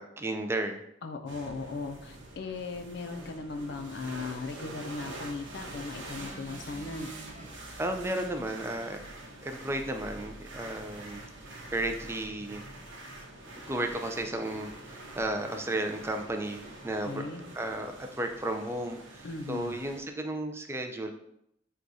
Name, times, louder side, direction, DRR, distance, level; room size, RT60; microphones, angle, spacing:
voice 1, 0.0-0.8 7.8-9.0 9.4-11.2 11.7-12.6 13.7-17.3 17.5-21.1, right 1 dB, 15° right, 5 dB, 0.3 m, -33 dB
voice 2, 1.0-7.1 17.0-17.4 19.2-19.8, left 3 dB, 65° left, 7 dB, 0.4 m, -38 dB
sound 1, 1.3-20.0, right 2 dB, 85° right, 0.8 m, -46 dB
sound 2, 6.2-7.5 8.5-8.6, right 3 dB, 45° right, 0.9 m, -46 dB
6.1 x 2.3 x 2.6 m, 0.77 s
head